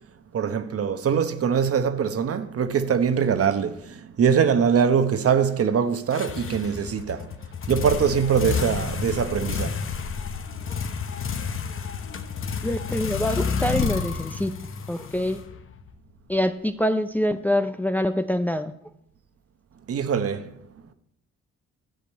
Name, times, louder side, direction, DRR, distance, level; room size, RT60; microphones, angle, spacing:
voice 1, 0.3-7.3 7.7-9.8 19.9-20.5, right 7 dB, 50° right, 1.0 m, -23 dB
sound 1, 6.1-15.9, left 6 dB, 45° left, 1.0 m, -30 dB
voice 2, 12.6-14.6 14.9-15.4 16.3-18.7, left 1 dB, 5° left, 0.5 m, -25 dB
13.0 x 5.2 x 8.3 m
cardioid pair, 90°, 30 cm